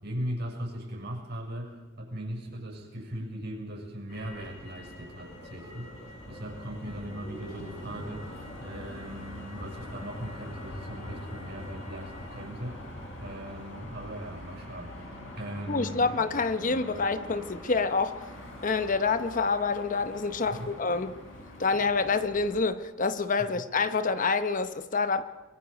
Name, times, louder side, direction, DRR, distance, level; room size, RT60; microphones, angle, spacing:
voice 1, 0.0-8.3 8.6-12.9 13.2-16.1 20.5-20.7, equal, 60° right, 6.1 m, -39 dB
Motor vehicle (road), 4.1-22.6, left 1 dB, 80° left, 6.5 m, -43 dB
voice 2, 15.7-18.2 18.6-21.1 21.6-25.2, left 4 dB, 40° left, 0.9 m, -27 dB
24.5 x 23.0 x 5.1 m
head